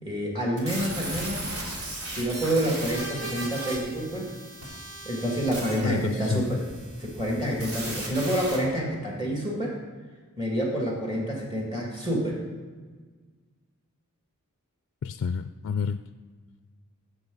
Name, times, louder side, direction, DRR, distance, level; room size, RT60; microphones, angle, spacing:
voice 1, 0.0-1.5 2.1-4.3 5.0-6.6 7.0-9.8 10.4-12.4, right 1 dB, 20° right, -3 dB, 2.2 m, -28 dB
sound 1, 0.6-8.6, right 1 dB, 75° right, 3.1 m, -37 dB
voice 2, 5.8-6.6 15.0-16.0, left 6 dB, 55° left, 10 dB, 0.3 m, -29 dB
16.0 x 6.8 x 4.0 m, 1.4 s
head